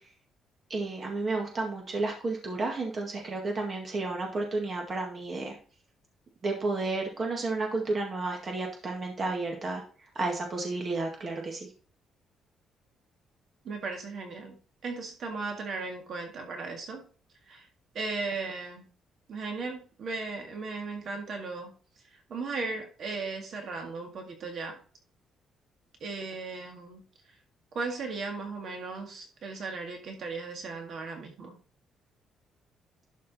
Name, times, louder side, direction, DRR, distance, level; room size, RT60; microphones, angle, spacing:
voice 1, 0.7-5.6 6.4-9.8 10.2-11.7, right 3 dB, 25° right, 1 dB, 1.9 m, -32 dB
voice 2, 13.6-17.0 17.5-17.7 17.9-18.9 19.3-21.7 22.1-24.8 26.0-27.0 27.7-31.6, right 4 dB, 45° right, 3 dB, 2.0 m, -36 dB
12.0 x 5.1 x 4.2 m, 0.38 s
cardioid pair, 175°, 0 cm